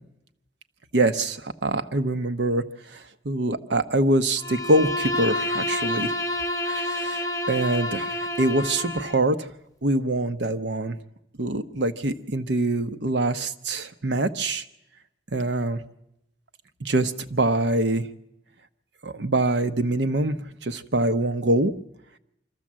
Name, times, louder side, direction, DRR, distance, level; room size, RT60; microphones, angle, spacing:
voice 1, 0.9-6.1 6.6-9.4 9.8-11.0 11.4-14.6 15.3-15.8 16.8-18.1 19.0-20.4 20.6-21.7, right 2 dB, 85° right, 9 dB, 0.9 m, -24 dB
Bowed string instrument, 4.4-9.3, left 1 dB, 20° left, 0.9 m, -29 dB
24.5 x 14.0 x 7.5 m, 0.84 s
head